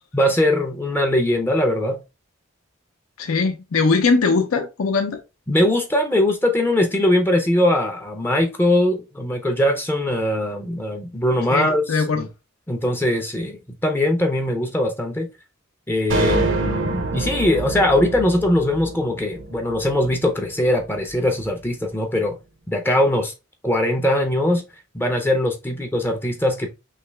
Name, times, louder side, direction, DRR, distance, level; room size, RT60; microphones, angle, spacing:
voice 1, 0.1-2.0 5.5-12.3 12.7-15.3 15.9-22.4 22.7-23.3 23.6-24.6 24.9-26.7, left 1 dB, 10° left, 0.4 m, -21 dB
voice 2, 3.2-5.2 11.5-12.3, left 4 dB, 85° left, 0.5 m, -20 dB
sound 1, 16.1-20.5, right 2 dB, 60° right, 0.6 m, -26 dB
3.2 x 2.9 x 3.2 m
head